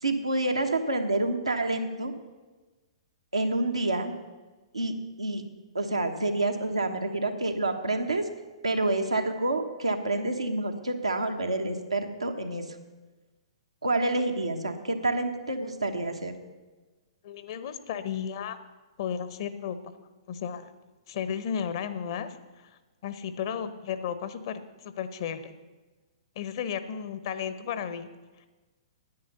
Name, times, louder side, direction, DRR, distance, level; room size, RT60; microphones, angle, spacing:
voice 1, 0.0-2.1 3.3-4.1 4.7-5.4 5.7-8.3 8.6-12.7 13.8-16.3, right 2 dB, 85° right, 4 dB, 1.3 m, -28 dB
voice 2, 17.2-18.6 19.0-19.8 20.3-20.7 21.1-22.7 23.0-25.5 26.4-28.1 28.4-28.5, left 8 dB, 50° left, 12 dB, 0.9 m, -34 dB
9.9 x 9.6 x 6.8 m, 1.3 s
figure-of-eight pair, 115°, 3 cm